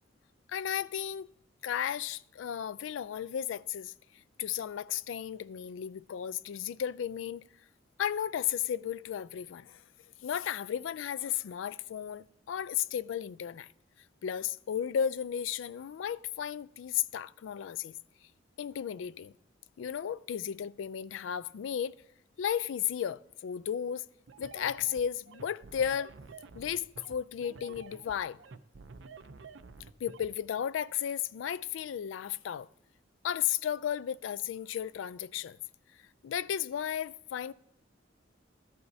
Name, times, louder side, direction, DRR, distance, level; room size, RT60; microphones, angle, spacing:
voice 1, 0.5-1.3 1.6-3.9 4.4-7.4 8.0-9.8 10.2-13.7 14.2-17.9 18.6-19.3 19.8-22.0 22.4-24.0 24.4-26.1 26.5-28.4 30.0-32.7 33.2-35.6 36.2-37.5, left 9 dB, 90° left, 0.3 m, -34 dB
sound 1, 24.3-30.3, right 4 dB, 80° right, 0.6 m, -50 dB
13.5 x 11.0 x 2.7 m
head